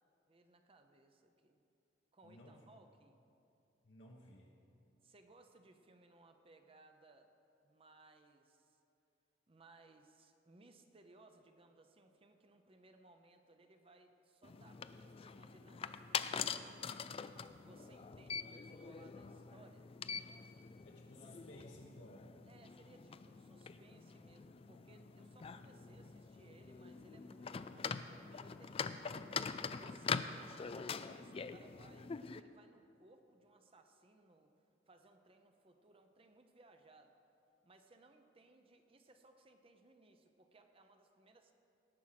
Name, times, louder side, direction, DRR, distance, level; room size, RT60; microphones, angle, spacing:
voice 1, 0.3-1.6 2.1-3.2 5.0-7.3 7.6-8.8 9.5-17.1 17.6-19.9 22.5-29.1 29.8-34.5 34.9-37.2 37.6-41.5, right 2 dB, 30° right, 6 dB, 0.7 m, -64 dB
voice 2, 2.2-2.6 3.8-4.5 20.8-22.3, left 1 dB, 75° left, -2 dB, 1.2 m, -57 dB
sound 1, 14.4-32.4, left 6 dB, 30° left, 0.3 m, -44 dB
18.0 x 6.3 x 5.9 m, 2.7 s
head